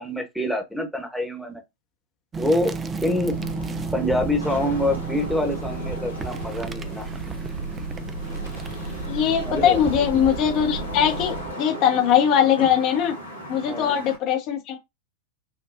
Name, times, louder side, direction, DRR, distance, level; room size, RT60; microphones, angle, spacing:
voice 1, 0.0-1.6 2.4-2.7 3.0-3.3 3.9-7.1 9.4-9.8 13.7-14.0, left 1 dB, ahead, 1.1 m, -26 dB
sound 1, 2.3-11.5, right 4 dB, 20° right, 0.4 m, -34 dB
Wind / Rain, 2.7-14.2, equal, 90° right, 1.6 m, -38 dB
Breathing / Bird, 3.0-11.6, right 2 dB, 85° left, 0.9 m, -35 dB
voice 2, 9.1-13.1 13.5-14.8, left 9 dB, 40° left, 0.7 m, -21 dB
5.6 x 2.2 x 2.6 m
figure-of-eight pair, 90°, 0 cm